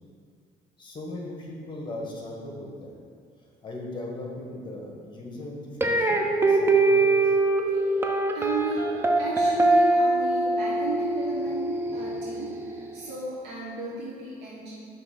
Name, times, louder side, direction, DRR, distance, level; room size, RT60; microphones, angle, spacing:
voice 1, 0.8-2.9 3.6-7.3, left 1 dB, 30° left, -1 dB, 1.2 m, -38 dB
sound 1, 5.8-12.9, right 2 dB, 15° right, 0.5 m, -23 dB
voice 2, 8.3-8.9 9.2-14.7, right 4 dB, 90° right, -7 dB, 1.1 m, -34 dB
5.7 x 3.0 x 5.6 m, 2.3 s
cardioid pair, 110°, 17 cm